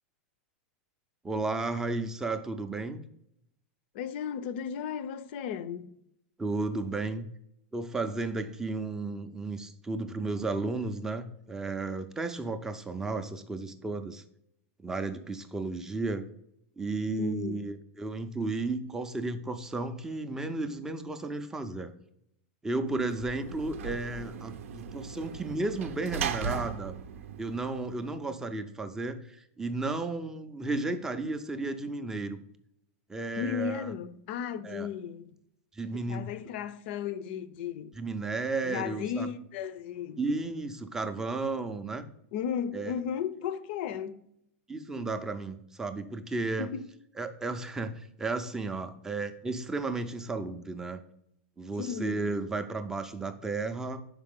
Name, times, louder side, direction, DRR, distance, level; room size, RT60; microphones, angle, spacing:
voice 1, 1.2-3.0 6.4-7.3 7.7-14.2 14.8-16.3 16.8-21.9 22.6-26.9 27.4-32.4 33.1-33.9 34.6-34.9 35.7-36.3 38.0-39.3 40.2-42.1 42.7-42.9 44.7-46.7 47.2-51.0 51.6-54.0, right 3 dB, 5° right, 0.4 m, -33 dB
voice 2, 3.9-6.0 17.2-17.6 33.4-35.4 36.1-37.9 38.6-40.4 42.3-44.2 46.6-46.9 51.8-52.3, left 8 dB, 50° left, 0.5 m, -35 dB
Sliding door / Slam, 22.9-28.3, right 7 dB, 80° right, 0.6 m, -38 dB
5.9 x 4.8 x 3.6 m
supercardioid pair, 155°, 7 cm